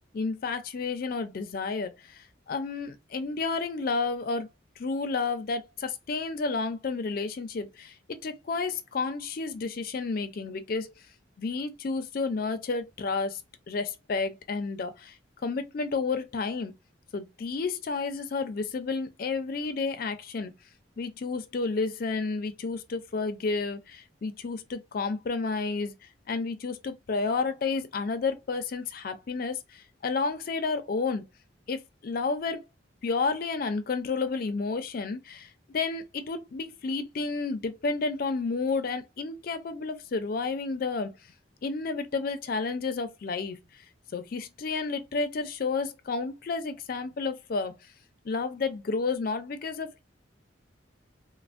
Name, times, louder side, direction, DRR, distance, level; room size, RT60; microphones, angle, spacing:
voice 1, 0.1-4.5 4.8-7.9 8.2-10.9 11.4-13.4 13.7-15.2 15.4-16.7 17.1-20.5 21.0-25.9 26.3-31.2 31.7-32.6 33.0-41.1 41.6-43.6 44.1-47.7 48.2-50.0, left 4 dB, 50° left, 0.4 m, -31 dB
3.2 x 2.0 x 2.4 m
head